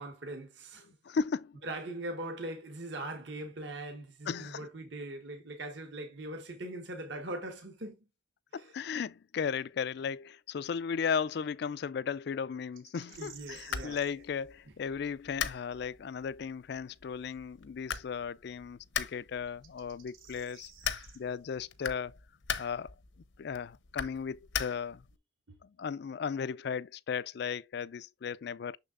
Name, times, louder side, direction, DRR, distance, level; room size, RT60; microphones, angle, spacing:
voice 1, 0.0-0.9 1.6-8.0 8.5-8.7 13.2-14.0 25.5-25.6, right 1 dB, 65° right, 1.4 m, -41 dB
voice 2, 1.0-1.6 4.3-4.7 8.5-22.2 22.6-22.9 23.4-25.0 25.6-28.8, left 6 dB, 55° left, 0.3 m, -36 dB
sound 1, 12.8-14.1 17.3-17.4 19.5-21.2, right 8 dB, 90° right, 1.6 m, -53 dB
sound 2, 13.1-25.2, left 8 dB, 70° left, 0.7 m, -41 dB
6.6 x 6.5 x 2.5 m
head